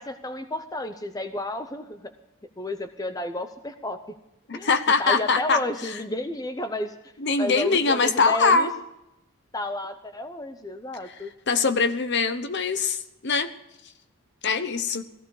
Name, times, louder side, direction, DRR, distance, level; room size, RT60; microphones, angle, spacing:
voice 1, 0.0-2.1 2.6-4.0 4.5-4.7 5.0-7.1 7.4-8.7 9.5-11.3, left 1 dB, 15° left, 9 dB, 0.6 m, -32 dB
voice 2, 4.5-5.9 7.2-8.7 11.5-13.5 14.4-15.0, left 4 dB, 50° left, 10 dB, 0.9 m, -23 dB
16.0 x 14.5 x 4.9 m, 0.88 s
head